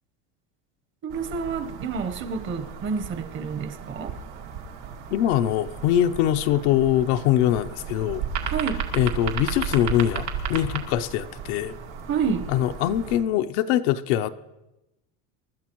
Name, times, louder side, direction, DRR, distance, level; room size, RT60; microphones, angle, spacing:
voice 1, 1.0-4.2 8.5-8.8 12.1-12.5, right 5 dB, 35° right, 0.9 m, -29 dB
sound 1, 1.1-13.2, right 7 dB, 85° right, 2.2 m, -34 dB
voice 2, 5.1-8.2 8.9-11.7 12.5-14.3, left 11 dB, 80° left, 0.7 m, -23 dB
24.0 x 12.5 x 3.0 m
cardioid pair, 150°, 33 cm